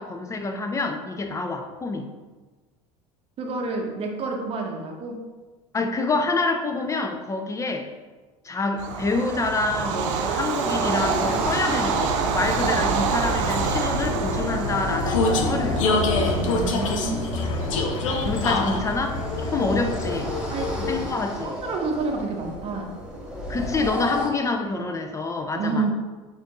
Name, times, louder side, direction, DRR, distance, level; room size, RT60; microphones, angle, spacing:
voice 1, 0.0-2.1 5.7-7.9 8.4-15.8 17.7-17.9 18.2-20.3 20.9-21.6 23.5-25.9, left 3 dB, 20° left, 5 dB, 0.4 m, -27 dB
voice 2, 3.4-5.2 10.7-11.4 16.3-17.7 19.7-19.8 20.5-21.0 21.4-22.9 25.5-25.9, right 3 dB, 35° right, 2 dB, 0.7 m, -30 dB
Bird vocalization bird call bird song / Train, 8.8-20.0, right 7 dB, 75° right, 0.4 m, -28 dB
Vehicle, 9.4-21.3, left 2 dB, 85° left, 0.5 m, -27 dB
sound 1, 10.6-24.3, equal, 5° right, 1.0 m, -33 dB
4.2 x 2.5 x 3.0 m, 1.3 s
hypercardioid pair, 80°, 16 cm